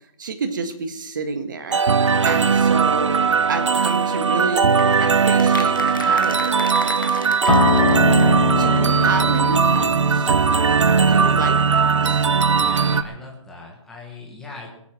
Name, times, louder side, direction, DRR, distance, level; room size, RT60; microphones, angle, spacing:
voice 1, 0.2-1.8 2.2-4.7 5.0-7.2 7.9-8.2 8.6-10.3 10.9-12.2, right 4 dB, 40° right, 7 dB, 1.6 m, -29 dB
sound 1, 1.7-13.0, right 5 dB, 65° right, 0.8 m, -18 dB
sound 2, 4.8-8.5 8.8-8.9 9.0-9.1 9.3-9.4, left 6 dB, 40° left, 1.2 m, -35 dB
Acoustic guitar, 7.5-12.7, left 6 dB, 85° left, 0.5 m, -25 dB
voice 2, 11.2-11.6 12.6-14.7, left 3 dB, ahead, -2 dB, 1.3 m, -40 dB
20.5 x 8.3 x 6.0 m, 0.74 s
hypercardioid pair, 175°, 17 cm